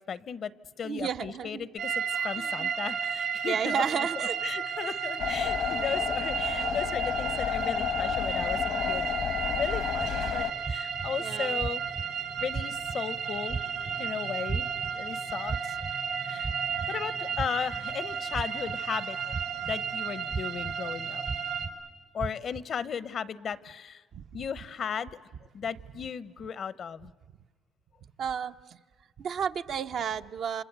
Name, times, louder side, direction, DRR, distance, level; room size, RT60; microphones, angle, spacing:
voice 1, 0.1-0.5 0.8-9.1 9.5-11.8 12.4-13.6 14.0-15.8 16.2-16.5 16.9-19.3 19.6-21.2 22.1-24.0 24.3-25.2 25.5-27.1, left 7 dB, 60° left, 20 dB, 0.8 m, -36 dB
voice 2, 0.8-1.7 2.4-2.7 3.5-4.4 4.9-5.0 11.2-11.6 24.1-24.2 28.2-28.8 29.2-30.6, right 7 dB, 65° right, 8 dB, 0.8 m, -32 dB
sound 1, 1.8-21.7, right 7 dB, 85° right, 2.8 m, -33 dB
sound 2, 5.2-10.5, left 9 dB, 80° left, 1.3 m, -31 dB
sound 3, 10.0-10.1 10.6-11.1 11.6-12.0 12.5-12.9 13.5-13.9 14.5-14.9 15.5-15.9 16.4-16.9 17.4-17.8 18.3-18.8 19.3-19.7 20.3-20.7 21.3-21.7 22.2-22.6, right 4 dB, 40° right, 0.9 m, -34 dB
28.5 x 26.0 x 8.1 m, 1.4 s
cardioid pair, 90°, 0 cm